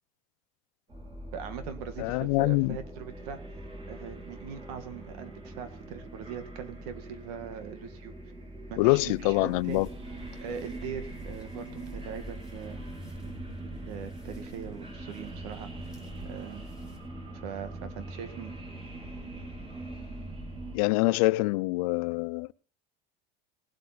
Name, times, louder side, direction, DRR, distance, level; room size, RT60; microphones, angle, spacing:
sound 1, 0.9-20.8, right 1 dB, 25° right, 4.1 m, -42 dB
voice 1, 1.3-3.4 3.9-8.1 8.7-9.9 10.4-12.8 13.6-15.7 16.2-16.7 17.4-18.5, right 7 dB, 80° right, 2.0 m, -41 dB
voice 2, 2.0-2.8 8.8-9.9 20.7-22.5, left 23 dB, 70° left, 0.5 m, -25 dB
sound 2, 8.9-17.0, right 1 dB, 5° right, 3.4 m, -55 dB
19.0 x 8.5 x 4.3 m
cardioid pair, 170°, 19 cm